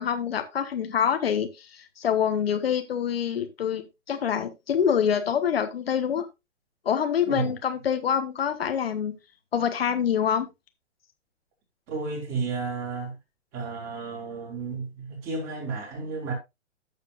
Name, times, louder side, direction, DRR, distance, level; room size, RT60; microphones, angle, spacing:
voice 1, 0.0-6.3 6.8-9.1 9.5-10.5, left 8 dB, 55° left, 1.3 m, -26 dB
voice 2, 11.9-13.1 13.5-16.3, right 4 dB, 25° right, 4.8 m, -32 dB
13.5 x 7.3 x 2.5 m
figure-of-eight pair, 120°, 36 cm